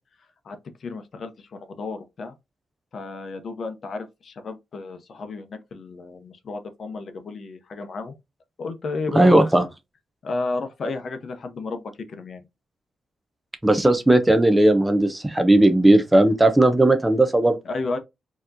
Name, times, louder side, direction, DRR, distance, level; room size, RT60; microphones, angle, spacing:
voice 1, 0.4-2.3 2.9-8.2 8.6-9.4 10.2-11.8 12.1-12.4 17.7-18.0, left 3 dB, 40° left, 0.7 m, -32 dB
voice 2, 9.1-9.7 13.6-17.6, right 1 dB, 10° right, 0.5 m, -17 dB
4.4 x 2.9 x 2.5 m
wide cardioid pair, 170°, 0 cm